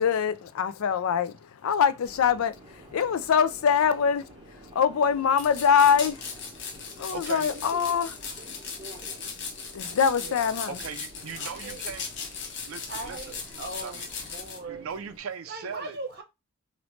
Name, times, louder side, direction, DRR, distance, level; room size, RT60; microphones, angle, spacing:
voice 1, 0.0-1.4 1.6-2.5 2.9-4.3 4.7-6.2 7.0-8.2 9.7-10.8, left 7 dB, 80° left, 0.4 m, -23 dB
Subway metro underground, 2.0-15.2, right 1 dB, 20° right, 0.8 m, -50 dB
sound 1, 5.4-14.6, left 5 dB, 55° left, 0.7 m, -38 dB
voice 2, 7.1-7.7 10.7-12.1 12.6-13.4 13.8-14.1 14.6-16.0, right 6 dB, 70° right, 0.4 m, -38 dB
voice 3, 10.2-10.6 11.4-11.8 12.9-14.9 15.5-16.2, right 2 dB, 50° right, 0.9 m, -39 dB
3.1 x 2.6 x 3.1 m
head